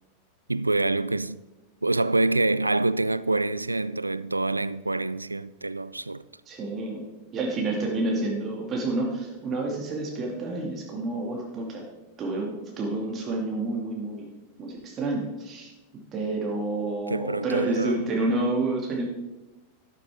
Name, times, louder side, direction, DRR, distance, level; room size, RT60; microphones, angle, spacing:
voice 1, 0.5-1.4 1.8-6.2 17.1-18.2, right 2 dB, 85° right, 0.3 m, -26 dB
voice 2, 6.5-7.0 7.3-11.8 12.2-14.3 14.6-19.0, right 2 dB, 30° right, 2.2 m, -29 dB
12.0 x 11.5 x 3.6 m
figure-of-eight pair, 90°, 0 cm